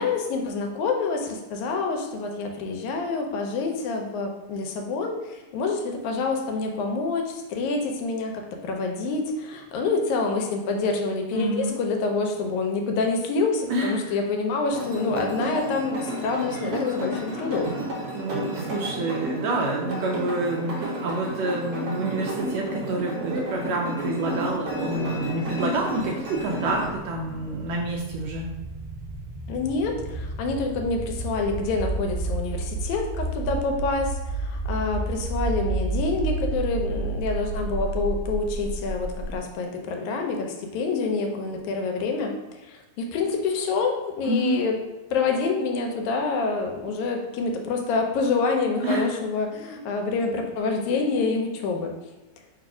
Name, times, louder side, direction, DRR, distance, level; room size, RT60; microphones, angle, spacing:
voice 1, 0.0-17.9 29.5-44.8 45.1-51.9, left 4 dB, 85° left, 3 dB, 2.0 m, -27 dB
voice 2, 11.3-11.7 13.7-14.1 18.1-28.5 44.3-44.6 48.8-49.1, right 2 dB, 80° right, -1 dB, 1.5 m, -28 dB
sound 1, 14.7-26.9, right 1 dB, 60° right, 1.7 m, -32 dB
sound 2, 23.7-39.4, right 3 dB, 30° right, 0.8 m, -32 dB
4.6 x 2.4 x 4.8 m, 1.1 s
omnidirectional pair, 3.4 m